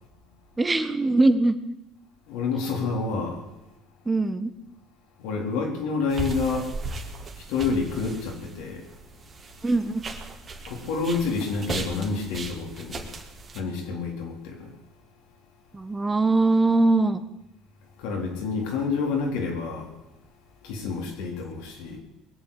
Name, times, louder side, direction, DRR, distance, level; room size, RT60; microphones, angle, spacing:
voice 1, 0.6-1.6 4.1-4.5 9.6-10.0 15.7-17.2, right 2 dB, 15° right, 10 dB, 1.4 m, -21 dB
voice 2, 2.3-3.4 5.2-6.7 7.4-8.9 10.7-13.1 13.5-14.7 18.0-19.9 20.6-22.0, left 4 dB, 80° left, 1 dB, 4.0 m, -28 dB
sound 1, 6.1-13.6, right 2 dB, 35° right, 2.6 m, -37 dB
20.5 x 7.7 x 8.8 m, 0.95 s
supercardioid pair, 85°, 0 cm